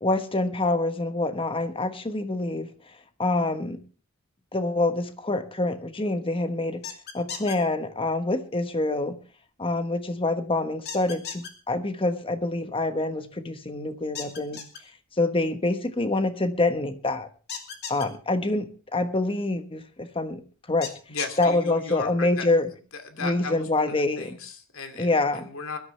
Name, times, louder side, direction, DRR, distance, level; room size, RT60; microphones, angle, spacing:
voice 1, 0.0-2.7 3.2-3.8 4.5-6.8 7.1-9.2 9.6-14.6 15.2-17.3 17.9-20.4 20.7-20.9 21.4-22.7 23.2-24.4 25.0-25.5, left 2 dB, 25° left, 9 dB, 1.2 m, -26 dB
sound 1, 6.8-7.6 10.9-11.5 14.2-14.8 17.5-18.1 20.8-21.5, left 6 dB, 50° left, 2.7 m, -35 dB
voice 2, 21.1-22.5 23.0-25.8, left 4 dB, 70° left, 6 dB, 2.6 m, -36 dB
22.0 x 13.0 x 3.3 m, 0.36 s
head